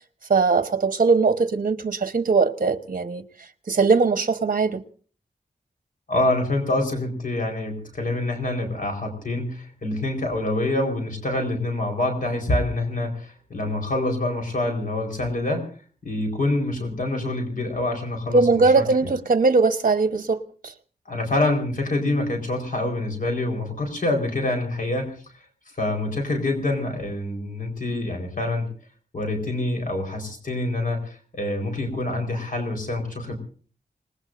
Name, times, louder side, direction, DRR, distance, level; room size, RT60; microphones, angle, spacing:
voice 1, 0.3-3.2 3.7-4.8 18.3-20.7, right 4 dB, 60° right, 1.1 m, -20 dB
voice 2, 6.1-15.7 16.0-19.1 21.1-25.2 25.8-28.7 29.1-33.4, left 2 dB, 60° left, 4.4 m, -26 dB
27.5 x 19.5 x 2.6 m
wide cardioid pair, 100°, 16 cm